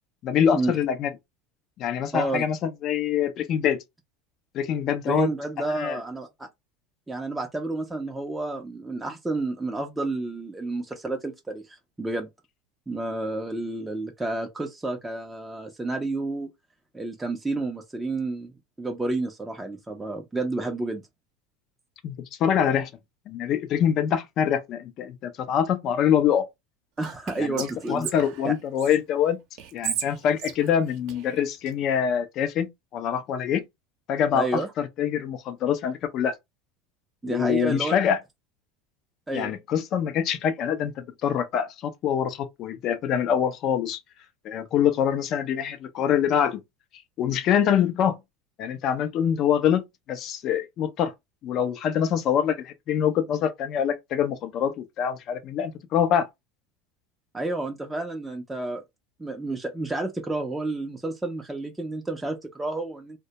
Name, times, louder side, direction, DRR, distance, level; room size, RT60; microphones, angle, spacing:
voice 1, 0.2-1.1 1.8-2.6 2.8-3.8 4.5-5.3 5.7-6.0 22.0-22.9 23.3-26.4 27.4-29.4 29.7-33.6 34.1-36.3 37.2-38.2 39.3-44.0 44.4-46.6 47.2-48.2 48.6-49.8 50.1-51.1 51.4-56.3, left 8 dB, 50° left, 0.5 m, -25 dB
voice 2, 2.1-2.5 5.1-6.5 7.1-12.3 12.9-16.5 16.9-18.5 18.8-21.0 27.0-28.1 28.4-28.5 34.3-34.7 37.2-38.0 39.3-39.5 57.3-58.8 59.2-63.2, right 2 dB, 10° right, 0.5 m, -30 dB
Whispering, 27.0-29.0 29.6-31.7, right 9 dB, 60° right, 0.7 m, -35 dB
2.1 x 2.1 x 2.8 m
hypercardioid pair, 90°, 0 cm